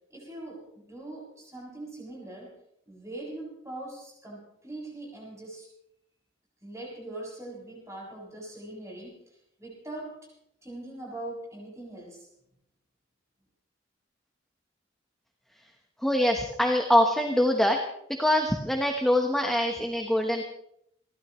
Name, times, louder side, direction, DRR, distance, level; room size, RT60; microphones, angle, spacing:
voice 1, 0.1-2.5 2.9-5.7 6.6-10.3 10.6-12.3, right 2 dB, 15° right, -4 dB, 7.4 m, -41 dB
voice 2, 16.0-17.8 18.2-20.4, left 1 dB, ahead, 3 dB, 1.1 m, -24 dB
30.0 x 12.5 x 3.1 m, 0.76 s
head